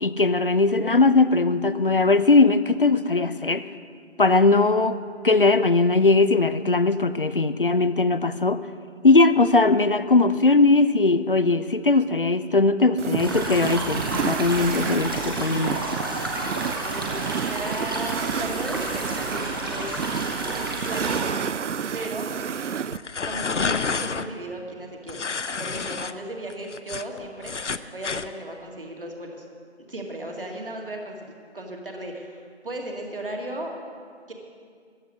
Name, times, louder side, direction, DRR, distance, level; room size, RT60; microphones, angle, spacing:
voice 1, 0.0-3.6 4.2-8.6 9.0-15.8, left 3 dB, 50° left, 13 dB, 0.5 m, -19 dB
sound 1, 13.0-23.0, right 7 dB, 85° right, 0.5 m, -30 dB
sound 2, 13.2-21.2, right 1 dB, 20° right, 1.2 m, -31 dB
voice 2, 16.8-20.1 20.9-21.5 21.9-22.3 23.2-25.2 25.6-27.6 27.9-29.5 29.9-31.2 31.5-33.7 34.3-34.4, right 1 dB, 50° right, 1 dB, 2.1 m, -35 dB
sound 3, 22.9-24.3 25.1-26.1 26.5-28.3, left 5 dB, 90° left, 0.7 m, -29 dB
14.0 x 9.9 x 6.3 m, 2.1 s
figure-of-eight pair, 165°, 35 cm